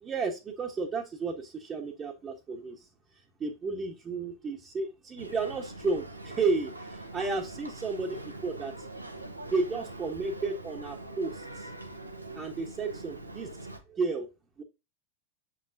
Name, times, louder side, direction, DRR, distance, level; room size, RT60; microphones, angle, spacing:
voice 1, 0.0-2.9 3.4-8.7 9.5-11.7 12.3-13.5 13.9-14.3 14.6-14.7, right 4 dB, 25° right, -2 dB, 1.1 m, -32 dB
Boat Water vehicle, 5.2-13.8, right 2 dB, 85° right, 1.0 m, -43 dB
7.0 x 5.7 x 2.7 m, 0.26 s
figure-of-eight pair, 90°, 0 cm